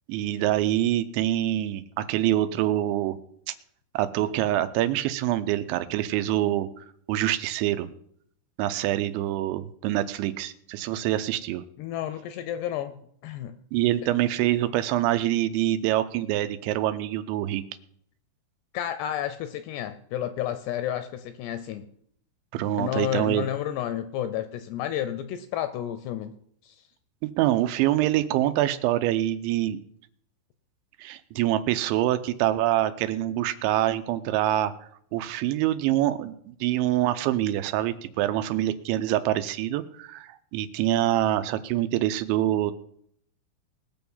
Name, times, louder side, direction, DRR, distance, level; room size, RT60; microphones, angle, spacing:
voice 1, 0.1-3.2 3.9-7.9 8.6-11.6 13.7-17.6 22.5-23.5 27.2-29.8 31.0-34.7 35.1-42.7, right 13 dB, 85° right, 11 dB, 3.0 m, -25 dB
voice 2, 11.8-12.9 13.2-13.6 18.7-21.9 22.8-26.3 26.6-26.8, left 11 dB, 80° left, 10 dB, 2.5 m, -31 dB
20.0 x 7.0 x 5.5 m, 0.67 s
omnidirectional pair, 5.4 m